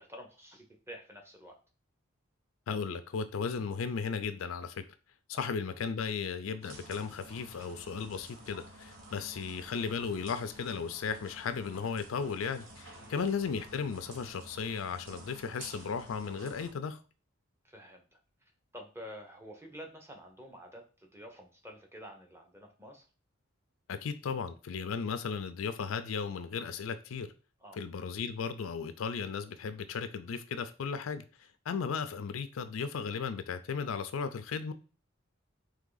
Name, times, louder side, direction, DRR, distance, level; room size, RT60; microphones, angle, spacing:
voice 1, 0.0-1.6 5.3-5.5 12.9-13.2 17.6-18.2 18.7-23.0 27.6-27.8, equal, 10° right, 0.8 m, -49 dB
voice 2, 2.7-4.8 5.3-17.0 23.9-27.3 27.8-31.2 31.7-34.7, left 5 dB, 75° left, 0.4 m, -35 dB
sound 1, 6.6-16.7, right 1 dB, 70° right, 1.2 m, -51 dB
3.6 x 3.2 x 3.9 m
head